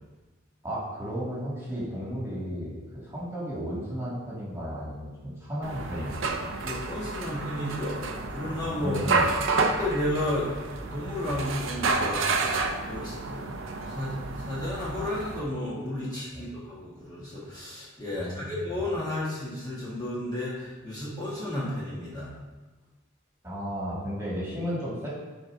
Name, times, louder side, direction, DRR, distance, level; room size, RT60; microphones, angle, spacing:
voice 1, 0.6-6.3 8.8-9.5 16.3-16.5 18.1-18.6 23.4-25.1, equal, 15° right, -7 dB, 2.1 m, -34 dB
sound 1, 5.6-15.4, right 3 dB, 75° right, 0.6 m, -30 dB
voice 2, 6.6-9.0 9.5-10.5 10.8-12.3 12.8-13.5 13.9-22.3, left 1 dB, 20° left, -8 dB, 1.5 m, -33 dB
11.5 x 4.5 x 2.7 m, 1.2 s
head